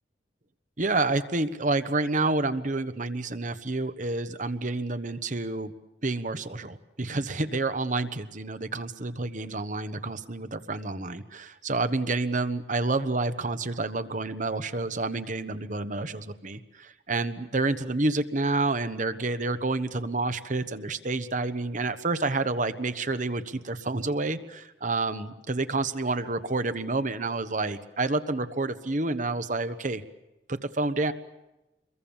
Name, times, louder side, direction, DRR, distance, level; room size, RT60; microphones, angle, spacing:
voice 1, 0.8-5.7 6.0-30.0 30.5-31.1, right 3 dB, 45° right, 11 dB, 1.3 m, -29 dB
27.0 x 22.5 x 7.2 m, 0.98 s
head